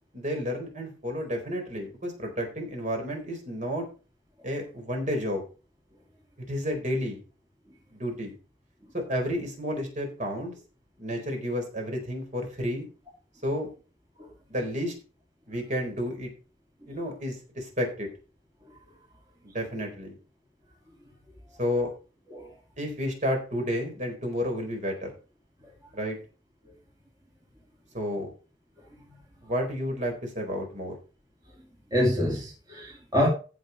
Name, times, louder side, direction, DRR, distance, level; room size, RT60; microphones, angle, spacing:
voice 1, 0.1-3.9 4.4-5.4 6.4-7.2 7.9-8.3 8.9-10.6 11.0-12.9 13.4-13.7 14.5-14.9 15.5-16.3 16.9-18.1 19.4-20.2 21.6-21.9 22.8-25.1 25.9-26.2 27.9-28.3 29.4-30.9, equal, 40° right, 4.2 m, -31 dB
voice 2, 18.6-19.0 19.5-19.6 21.5-21.6 22.3-22.6 25.6-25.7 26.6-26.8 28.8-29.2 31.9-33.3, left 1 dB, 20° right, 2.9 m, -29 dB
14.5 x 5.2 x 5.2 m
head